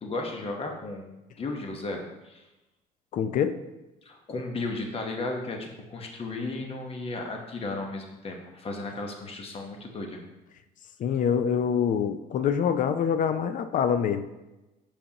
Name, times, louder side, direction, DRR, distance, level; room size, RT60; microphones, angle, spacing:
voice 1, 0.0-2.4 4.0-10.2, left 2 dB, 35° left, 2 dB, 1.0 m, -35 dB
voice 2, 3.1-3.6 11.0-14.3, left 7 dB, 50° left, 10 dB, 0.4 m, -25 dB
6.7 x 5.1 x 2.9 m, 1.0 s
cardioid pair, 110°, 17 cm